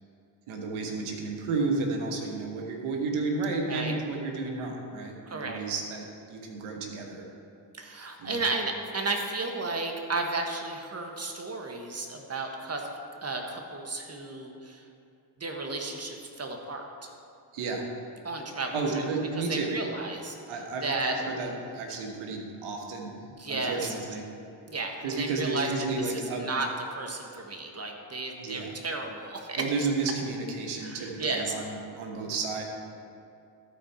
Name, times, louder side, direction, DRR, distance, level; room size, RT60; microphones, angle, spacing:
voice 1, 0.5-7.3 8.2-8.4 17.5-17.8 18.7-19.7 20.5-23.1 23.5-24.2 25.0-26.5 28.4-28.7 29.6-32.6, right 3 dB, 80° right, 1 dB, 1.3 m, -32 dB
voice 2, 5.3-5.6 7.7-12.9 13.2-14.8 15.4-17.1 18.2-18.8 19.4-20.3 20.8-21.1 23.4-23.9 24.7-25.7 26.0-26.7 26.9-29.6 30.8-31.5, right 3 dB, 30° right, 3 dB, 1.5 m, -33 dB
13.5 x 4.6 x 4.5 m, 2.6 s
supercardioid pair, 55°, 49 cm